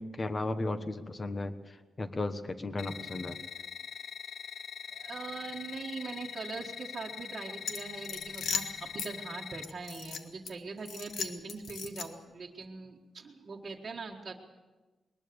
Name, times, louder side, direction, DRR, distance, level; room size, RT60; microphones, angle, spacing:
voice 1, 0.0-3.4, left 2 dB, 25° left, 10 dB, 1.2 m, -35 dB
sound 1, 2.8-9.6, left 7 dB, 55° left, 0.9 m, -43 dB
voice 2, 4.9-14.3, right 4 dB, 30° right, -4 dB, 1.7 m, -42 dB
sound 2, 7.6-9.1 9.6-10.5 10.8-12.3, left 6 dB, 70° left, 1.7 m, -37 dB
21.5 x 20.5 x 7.0 m, 1.2 s
wide cardioid pair, 170°, 0 cm